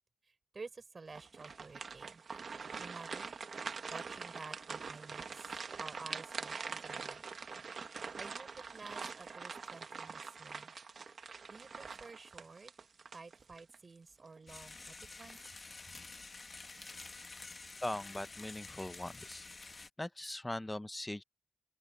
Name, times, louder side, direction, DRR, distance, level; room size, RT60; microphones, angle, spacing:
voice 1, 0.2-2.2 2.8-3.4 3.9-5.5 5.8-7.2 8.2-10.7 11.5-12.7 13.1-15.4, right 4 dB, 35° right, 5.7 m, -51 dB
sound 1, 1.1-13.8 14.2-14.4 15.0-15.5, right 5 dB, 50° right, 1.1 m, -44 dB
sound 2, 14.5-19.9, left 3 dB, 30° left, 1.1 m, -50 dB
voice 2, 17.8-19.4 20.0-21.2, left 1 dB, 10° left, 0.6 m, -40 dB
open air
wide cardioid pair, 180°, 0 cm